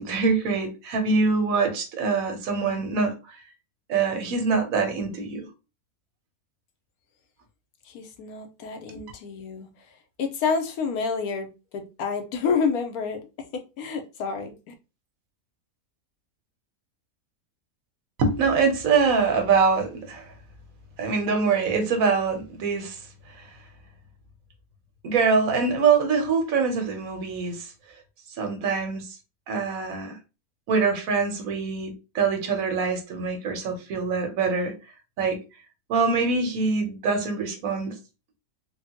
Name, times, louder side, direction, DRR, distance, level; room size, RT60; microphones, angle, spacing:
voice 1, 0.0-3.4 3.9-5.5 8.9-9.0 18.2-20.3 21.0-23.0 25.0-27.7 28.4-29.1 29.5-30.2 30.7-34.7 35.2-35.4 35.9-37.9, right 5 dB, 70° right, 1.1 m, -24 dB
voice 2, 7.8-9.7 10.2-11.5 11.7-13.3 13.5-14.7, left 5 dB, 85° left, 1.1 m, -28 dB
3.4 x 2.2 x 2.8 m
omnidirectional pair, 1.5 m